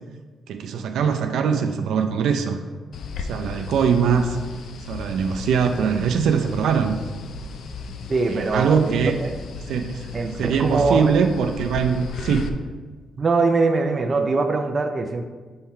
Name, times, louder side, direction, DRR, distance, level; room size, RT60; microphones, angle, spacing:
voice 1, 0.5-2.6 3.3-4.4 4.9-7.0 8.3-9.2 9.7-10.1 10.4-12.5, right 6 dB, 85° right, 5 dB, 0.5 m, -22 dB
sound 1, 2.9-12.5, left 4 dB, 65° left, 0.4 m, -35 dB
voice 2, 8.1-9.3 10.1-11.1 13.2-15.2, right 3 dB, 35° right, 5 dB, 0.5 m, -22 dB
5.6 x 4.4 x 4.6 m, 1.4 s
cardioid pair, 125°, 0 cm